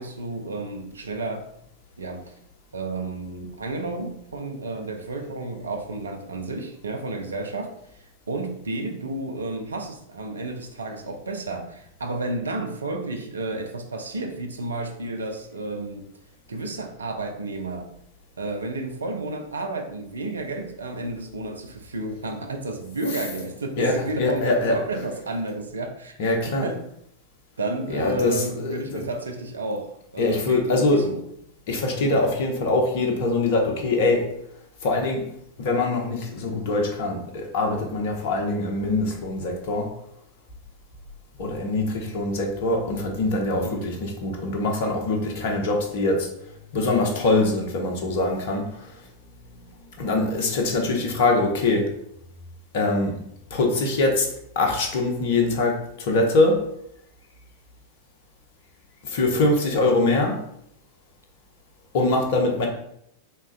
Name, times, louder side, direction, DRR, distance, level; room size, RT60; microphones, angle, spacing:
voice 1, 0.0-1.5 2.0-2.3 2.7-7.7 8.3-16.1 16.5-17.9 18.4-26.1 26.6-26.9 27.6-31.2 43.6-43.8 59.3-59.5, right 2 dB, 70° right, 0.5 m, -31 dB
voice 2, 23.8-25.0 26.2-26.7 27.9-29.0 30.2-31.0 31.7-34.2 34.8-35.3 35.6-39.9 41.4-46.3 46.7-49.1 50.0-51.8 52.7-53.1 53.5-54.3 54.5-56.6 59.0-60.4 61.9-62.7, left 2 dB, 50° left, 0.9 m, -23 dB
4.4 x 3.6 x 2.2 m
figure-of-eight pair, 90°, 0 cm